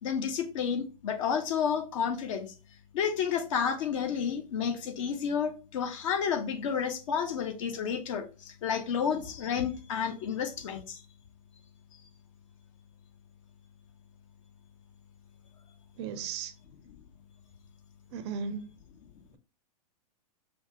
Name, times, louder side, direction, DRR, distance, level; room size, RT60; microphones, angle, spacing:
voice 1, 0.0-2.5 2.9-11.0 16.9-17.0, left 7 dB, 55° left, 0.8 m, -31 dB
voice 2, 16.0-16.5 18.1-18.7, right 6 dB, 45° right, 0.5 m, -36 dB
5.3 x 2.4 x 2.9 m
figure-of-eight pair, 105°, 20 cm